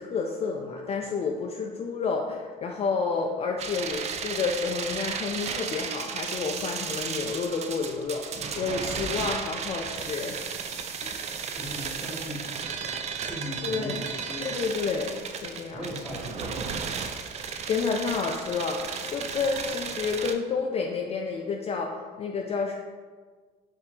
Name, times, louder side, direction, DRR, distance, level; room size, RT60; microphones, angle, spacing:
voice 1, 0.0-10.4 11.0-11.2 13.6-14.0 14.4-15.8 17.7-22.7, left 5 dB, 35° left, 1 dB, 0.3 m, -30 dB
sound 1, 3.6-20.3, right 6 dB, 40° right, 0.3 m, -34 dB
voice 2, 11.5-12.7 13.3-14.5 15.7-16.8, equal, 5° right, -4 dB, 1.2 m, -38 dB
4.6 x 2.7 x 3.5 m, 1.5 s
cardioid pair, 110°, 17 cm